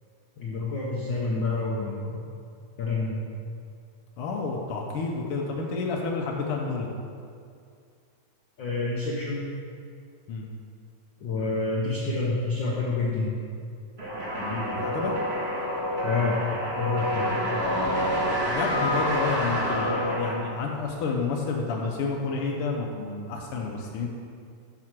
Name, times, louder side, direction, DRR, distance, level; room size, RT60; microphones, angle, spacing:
voice 1, 0.4-2.2 2.8-3.2 8.6-9.5 11.2-13.4 16.0-17.3, left 3 dB, 90° left, -4 dB, 1.0 m, -28 dB
voice 2, 4.2-6.9 10.3-10.5 14.4-15.1 18.5-24.1, left 4 dB, 75° left, -1 dB, 1.3 m, -30 dB
sound 1, 14.0-20.7, equal, 30° right, 1.3 m, -28 dB
7.9 x 4.9 x 5.9 m, 2.3 s
omnidirectional pair, 3.4 m